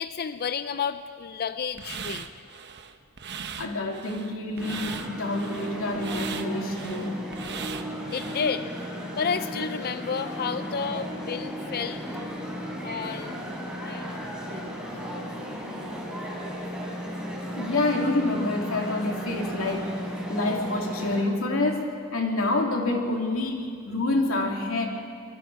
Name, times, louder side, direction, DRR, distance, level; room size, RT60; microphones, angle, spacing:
voice 1, 0.0-2.3 8.1-8.7 9.2-12.0 12.8-13.4 13.8-14.2 14.5-14.7, left 6 dB, 50° left, 11 dB, 0.5 m, -31 dB
sound 1, 1.8-8.5, right 7 dB, 55° right, 1.0 m, -39 dB
voice 2, 3.6-7.2 17.5-19.9 20.3-24.9, left 2 dB, 75° left, 0 dB, 3.0 m, -27 dB
sound 2, 4.6-21.2, equal, 5° right, 4.3 m, -35 dB
24.5 x 24.0 x 4.9 m, 2.2 s
head